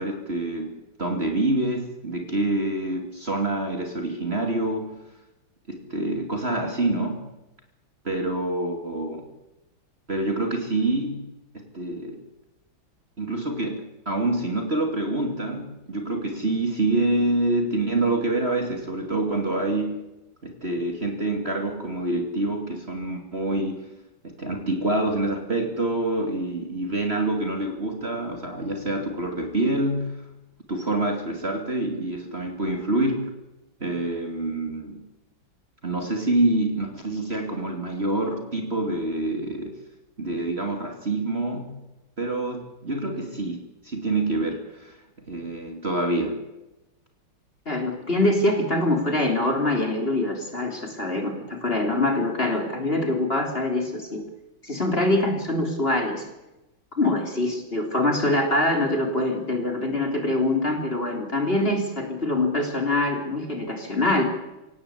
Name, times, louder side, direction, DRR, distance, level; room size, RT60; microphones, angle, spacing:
voice 1, 0.0-5.0 5.7-7.3 8.0-9.3 10.1-12.2 13.2-20.1 20.4-23.9 24.2-30.2 30.7-33.3 33.8-35.1 35.8-39.8 40.2-41.8 42.2-45.0 45.3-46.4, right 2 dB, 30° right, 3 dB, 2.8 m, -26 dB
voice 2, 47.7-54.2 54.6-56.2 57.0-64.2, left 2 dB, 25° left, 3 dB, 4.0 m, -24 dB
26.0 x 17.5 x 8.5 m, 0.97 s
omnidirectional pair, 2.2 m